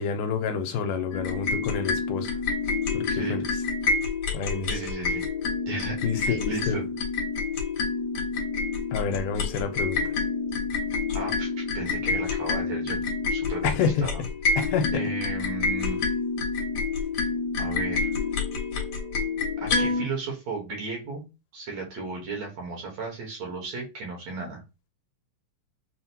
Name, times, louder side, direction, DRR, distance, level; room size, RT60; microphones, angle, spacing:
voice 1, 0.0-2.3 2.9-3.4 4.3-4.8 6.0-6.8 8.9-10.1 13.6-14.1 14.6-15.0, left 6 dB, 85° left, 2.1 m, -28 dB
sound 1, 1.1-20.0, left 4 dB, 65° left, 1.4 m, -28 dB
voice 2, 3.1-3.4 4.7-5.2 5.7-6.9 11.1-14.2 14.9-16.0 17.2-17.3 17.6-18.1 19.6-21.3 21.5-24.6, right 3 dB, 60° right, 2.2 m, -35 dB
6.1 x 2.2 x 2.8 m
omnidirectional pair, 3.8 m